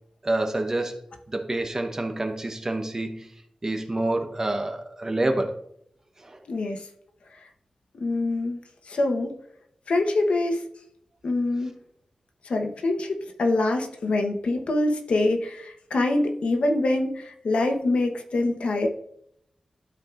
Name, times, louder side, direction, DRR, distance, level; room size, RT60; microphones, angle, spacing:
voice 1, 0.2-3.3 3.6-5.6 6.2-6.4, right 2 dB, 25° right, 5 dB, 1.0 m, -28 dB
voice 2, 6.5-6.9 8.0-8.6 8.9-9.3 9.9-10.6 11.2-11.7 12.4-18.9, left 2 dB, 75° left, 4 dB, 1.0 m, -25 dB
13.5 x 4.6 x 2.5 m, 0.74 s
wide cardioid pair, 120°, 2 cm